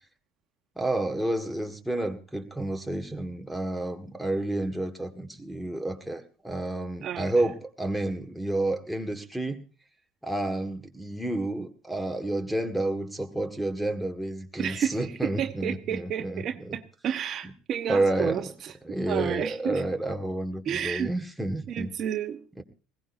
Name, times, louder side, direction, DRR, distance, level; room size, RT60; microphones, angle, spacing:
voice 1, 0.8-9.6 10.2-16.8 17.9-18.5 18.8-21.9 22.6-22.7, right 1 dB, ahead, 3 dB, 1.8 m, -30 dB
voice 2, 14.6-18.7 19.1-19.8 20.6-21.1 21.7-22.4, right 9 dB, 50° right, 7 dB, 1.0 m, -31 dB
20.5 x 17.5 x 2.7 m, 0.36 s
hypercardioid pair, 75°, 0 cm